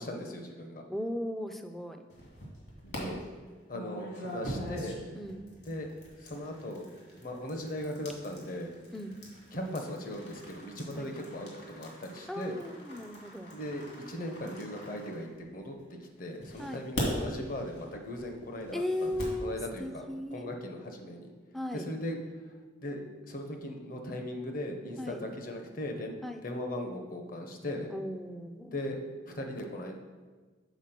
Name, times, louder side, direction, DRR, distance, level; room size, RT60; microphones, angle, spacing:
voice 1, 0.0-0.8 2.8-3.2 3.7-5.0 5.7-5.9 6.2-6.9 7.2-8.7 9.5-12.6 13.5-19.1 19.4-20.0 20.3-21.3 21.7-22.2 22.8-23.0 23.3-26.1 26.4-27.9 28.7-30.0, left 1 dB, 50° left, 3 dB, 0.9 m, -38 dB
voice 2, 0.9-2.1 5.2-5.5 8.9-9.2 11.0-11.1 12.3-13.5 16.6-16.9 18.7-20.5 21.5-21.9 25.0-25.2 26.2-26.4 27.9-28.8, left 1 dB, ahead, 5 dB, 0.4 m, -37 dB
sound 1, 2.1-3.0 3.7-15.8 16.4-19.4, equal, 65° left, 2.2 m, -43 dB
7.2 x 4.1 x 5.9 m, 1.4 s
head